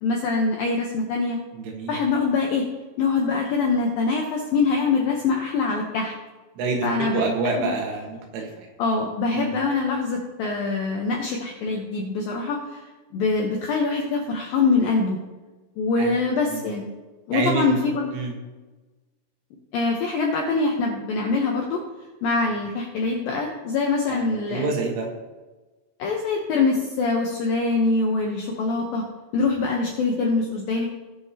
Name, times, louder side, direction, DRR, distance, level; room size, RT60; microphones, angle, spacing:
voice 1, 0.0-1.4 1.9-2.7 3.0-6.1 6.8-7.3 7.6-7.7 8.8-12.8 13.1-15.2 15.8-16.9 17.3-18.1 19.7-21.8 22.2-24.7 26.0-29.0 29.3-30.9, left 4 dB, 80° left, 0 dB, 2.0 m, -24 dB
voice 2, 1.5-2.0 6.6-6.9 7.1-8.7 9.3-9.5 16.0-16.2 16.5-16.6 17.3-17.8 18.1-18.3 24.1-25.1, right 4 dB, 85° right, 1 dB, 4.0 m, -27 dB
19.0 x 6.7 x 2.9 m, 1.2 s
omnidirectional pair, 5.5 m